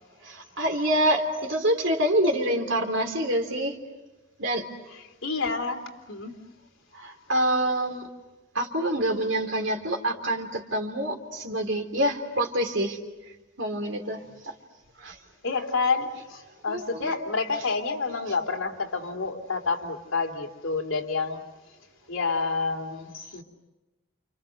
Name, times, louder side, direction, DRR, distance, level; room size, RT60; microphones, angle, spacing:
voice 1, 0.2-3.8 4.4-4.7 6.9-8.1 8.5-13.0 13.6-14.5 15.0-15.2 16.7-17.2, right 1 dB, 65° right, 4 dB, 3.7 m, -26 dB
voice 2, 5.2-6.4 15.4-21.4 22.1-23.4, left 4 dB, 70° left, 3 dB, 3.3 m, -29 dB
29.5 x 29.0 x 6.6 m, 1.1 s
head